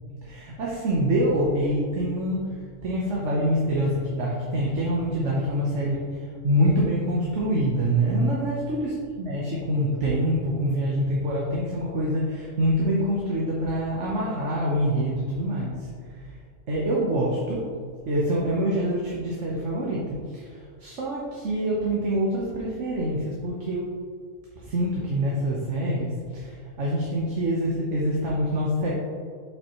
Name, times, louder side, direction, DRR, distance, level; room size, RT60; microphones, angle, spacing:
voice 1, 0.2-15.9 16.2-16.3 16.7-17.7 18.1-23.9 24.6-28.9, equal, 70° right, -5 dB, 1.3 m, -25 dB
7.8 x 5.8 x 3.1 m, 2.1 s
omnidirectional pair, 1.3 m